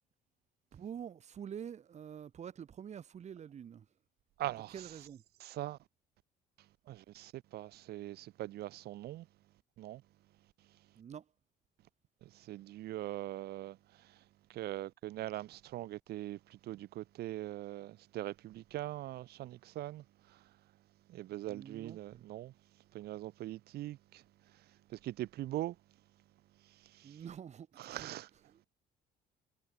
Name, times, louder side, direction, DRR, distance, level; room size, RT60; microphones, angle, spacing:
voice 1, 0.7-3.9 4.7-5.2 10.9-11.3 21.5-22.2 27.0-28.1 28.5-28.6, right 8 dB, 40° right, 1.5 m, -47 dB
voice 2, 4.4-4.7 5.4-5.8 6.9-9.3 9.8-10.0 12.2-13.8 14.0-14.2 14.5-20.4 21.1-22.5 22.9-24.2 24.9-25.8 26.9-27.2 27.8-28.3, right 15 dB, 70° right, 1.1 m, -42 dB
cardioid pair, 110°, 17 cm